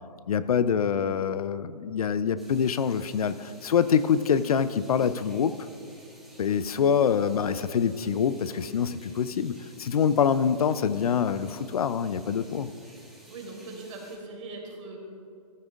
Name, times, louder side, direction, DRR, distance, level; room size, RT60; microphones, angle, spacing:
voice 1, 0.3-5.5 6.4-12.7, left 7 dB, 60° left, 14 dB, 0.5 m, -25 dB
sound 1, 2.4-14.2, right 1 dB, ahead, 1.9 m, -54 dB
voice 2, 13.3-15.0, right 3 dB, 50° right, 0 dB, 2.9 m, -41 dB
15.5 x 14.0 x 2.5 m, 2.6 s
figure-of-eight pair, 135°, 21 cm